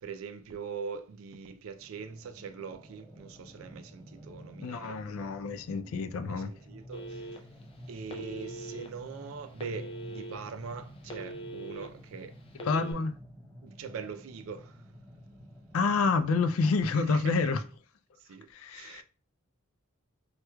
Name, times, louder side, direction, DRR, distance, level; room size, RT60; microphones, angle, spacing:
voice 1, 0.0-5.0 6.3-7.3 7.9-12.3 13.6-14.8 16.9-17.5 18.2-19.0, right 5 dB, 80° right, 0.4 m, -42 dB
sound 1, 1.7-16.4, equal, 10° left, 1.6 m, -50 dB
voice 2, 4.6-6.5 12.6-13.1 15.7-17.6 18.5-19.0, left 4 dB, 85° left, 0.4 m, -28 dB
Telephone, 6.9-7.6 8.1-8.9 9.6-10.4 10.8-11.9 12.5-12.9, right 1 dB, 25° left, 0.4 m, -41 dB
4.3 x 2.3 x 2.2 m
head